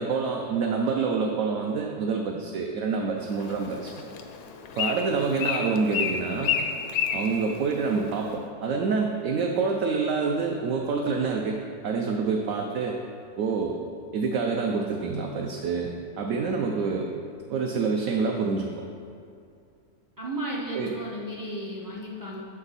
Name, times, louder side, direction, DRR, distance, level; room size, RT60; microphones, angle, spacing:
voice 1, 0.0-3.9 4.8-6.6 7.1-11.6 11.8-13.0 13.4-13.8 14.1-15.9 16.2-17.1 17.5-18.7 20.7-21.0, right 4 dB, 70° right, 1 dB, 0.8 m, -27 dB
Bird, 3.2-8.4, left 7 dB, 85° left, 1.1 m, -31 dB
voice 2, 20.2-22.4, right 1 dB, 30° right, -4 dB, 0.3 m, -34 dB
7.1 x 5.2 x 4.0 m, 2.4 s
omnidirectional pair, 1.6 m